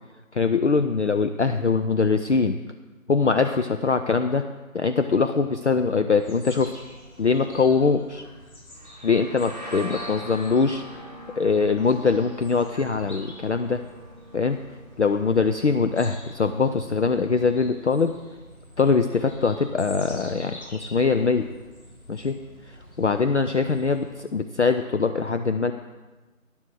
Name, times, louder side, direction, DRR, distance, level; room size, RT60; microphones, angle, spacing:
voice 1, 0.3-2.6 3.1-4.5 4.7-6.7 7.2-8.3 9.0-11.1 11.4-13.8 14.3-14.6 15.0-18.1 18.8-21.5 22.1-22.4 22.7-25.7, left 4 dB, 55° left, 8 dB, 0.5 m, -22 dB
sound 1, 6.1-24.1, left 1 dB, 80° left, 3.9 m, -47 dB
sound 2, 8.7-16.3, right 1 dB, 30° right, 0.6 m, -43 dB
10.0 x 7.1 x 6.2 m, 1.2 s
figure-of-eight pair, 165°, 43 cm